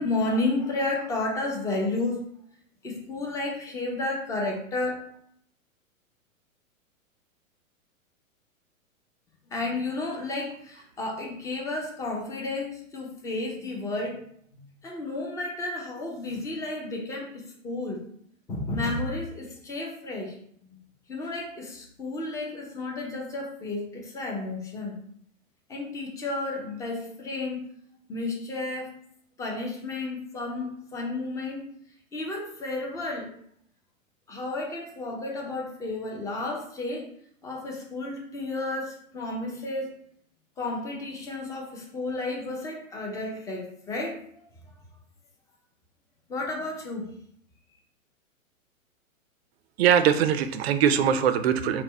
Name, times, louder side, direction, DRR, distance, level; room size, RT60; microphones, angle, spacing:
voice 1, 0.0-2.2 2.8-5.0 9.5-14.2 14.5-18.0 18.5-20.4 20.6-20.8 21.1-24.9 25.7-27.6 28.1-28.9 29.4-31.6 32.1-33.3 34.3-37.1 37.4-39.9 40.6-44.4 46.3-47.1, left 2 dB, 10° left, -1 dB, 0.4 m, -32 dB
voice 2, 49.8-51.8, right 8 dB, 50° right, 10 dB, 0.5 m, -22 dB
4.1 x 2.1 x 4.2 m, 0.66 s
hypercardioid pair, 110°, 41 cm